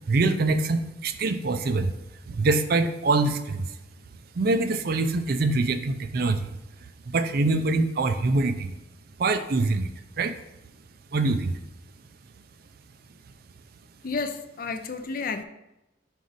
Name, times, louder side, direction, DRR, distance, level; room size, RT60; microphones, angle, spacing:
voice 1, 0.1-1.9 2.3-3.7 4.4-6.5 7.1-8.7 9.2-9.9 10.2-10.4 11.1-11.6, right 3 dB, 50° right, 0.4 m, -24 dB
voice 2, 14.0-15.4, left 4 dB, 45° left, 0.4 m, -31 dB
5.1 x 4.7 x 3.9 m
head